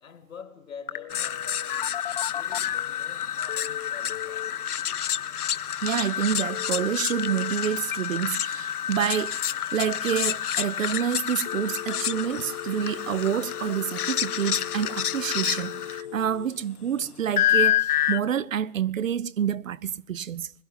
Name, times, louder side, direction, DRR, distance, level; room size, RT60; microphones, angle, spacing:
voice 1, 0.0-2.0 2.3-4.5, left 6 dB, 60° left, 1.8 m, -46 dB
Telephone, 0.9-3.0 3.5-4.5 6.5-7.5 7.8-8.2 9.9-10.6 11.0-11.1 11.4-16.5, left 10 dB, 35° left, 0.9 m, -37 dB
sound 1, 1.1-16.0 17.4-18.2, left 10 dB, 80° left, 0.7 m, -28 dB
voice 2, 5.8-20.5, right 9 dB, 60° right, 0.6 m, -28 dB
22.0 x 11.5 x 5.5 m
hypercardioid pair, 150°, 45 cm